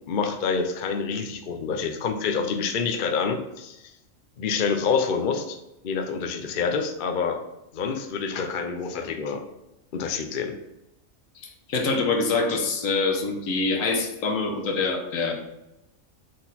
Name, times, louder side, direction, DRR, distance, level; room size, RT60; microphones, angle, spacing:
voice 1, 0.1-3.9 4.4-5.6 5.8-7.4 7.7-9.4 9.9-10.5, left 5 dB, 50° left, 5 dB, 0.6 m, -27 dB
voice 2, 11.4-15.3, left 3 dB, 70° left, 4 dB, 1.4 m, -25 dB
6.4 x 4.2 x 4.1 m, 0.90 s
omnidirectional pair, 1.4 m